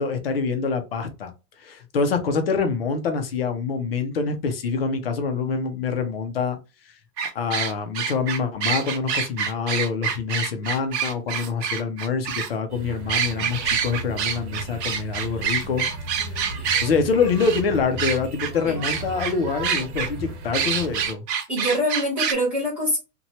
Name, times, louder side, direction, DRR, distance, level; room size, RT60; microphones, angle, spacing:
voice 1, 0.0-1.3 1.6-6.6 7.3-15.8 16.8-21.2, left 5 dB, 40° left, 0.5 m, -25 dB
sound 1, 7.2-12.5 13.1-16.9 17.4-17.6 18.0-18.5 18.8-19.3 19.6-20.1 20.5-22.3, right 7 dB, 90° right, 1.0 m, -26 dB
sound 2, 12.7-21.1, right 1 dB, 65° right, 1.1 m, -36 dB
voice 2, 21.5-23.0, equal, 5° right, 0.6 m, -24 dB
2.8 x 2.2 x 2.8 m
supercardioid pair, 175°, 48 cm